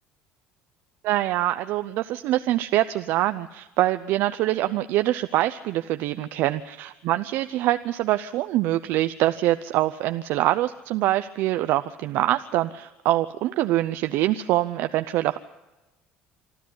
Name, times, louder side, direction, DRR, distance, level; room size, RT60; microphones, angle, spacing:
voice 1, 1.0-15.4, right 15 dB, 70° right, 10 dB, 0.7 m, -24 dB
26.0 x 12.5 x 9.6 m, 1.1 s
supercardioid pair, 90°, 4 cm